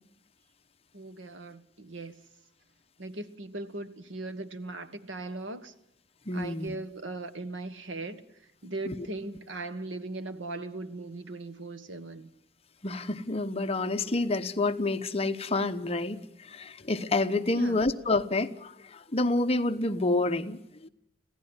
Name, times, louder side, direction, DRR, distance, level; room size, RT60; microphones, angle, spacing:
voice 1, 0.9-2.1 3.0-5.7 6.3-8.2 8.6-12.3 17.5-17.8, right 2 dB, 90° right, 1.5 m, -39 dB
voice 2, 6.3-6.7 8.9-9.0 12.8-20.9, left 2 dB, 35° left, 0.9 m, -28 dB
25.5 x 16.5 x 8.1 m
head